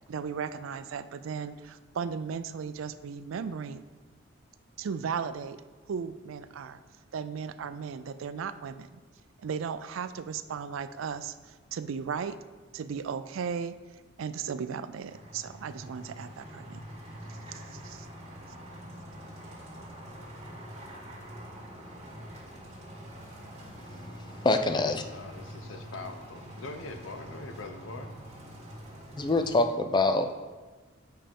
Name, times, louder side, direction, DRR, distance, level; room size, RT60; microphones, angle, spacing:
voice 1, 0.1-3.9 4.8-5.6 5.9-6.8 7.1-9.0 9.4-12.4 12.7-13.7 14.2-16.9 17.3-18.1, right 6 dB, 80° right, 12 dB, 0.4 m, -36 dB
sound 1, 15.1-29.6, equal, 35° right, 1.9 m, -45 dB
voice 2, 24.4-25.0 29.2-30.3, left 2 dB, 20° left, 8 dB, 0.4 m, -24 dB
voice 3, 25.1-28.2, left 3 dB, 80° left, 6 dB, 0.7 m, -42 dB
7.4 x 5.6 x 3.5 m, 1.3 s
head